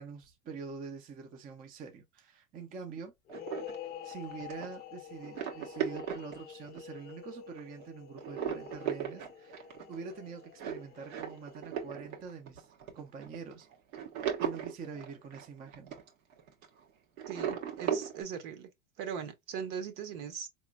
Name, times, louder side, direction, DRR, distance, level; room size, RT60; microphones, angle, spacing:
voice 1, 0.0-3.1 4.0-9.6 9.9-13.7 14.4-15.9, right 5 dB, 20° right, 0.5 m, -45 dB
sound 1, 3.3-11.8, left 8 dB, 25° left, 0.6 m, -48 dB
sound 2, 3.3-7.1 7.6-7.8 8.2-16.8 17.2-18.2, right 8 dB, 75° right, 1.3 m, -37 dB
voice 2, 17.3-18.7 19.0-20.5, right 7 dB, 55° right, 1.2 m, -39 dB
4.2 x 3.0 x 2.3 m
supercardioid pair, 125°, 41 cm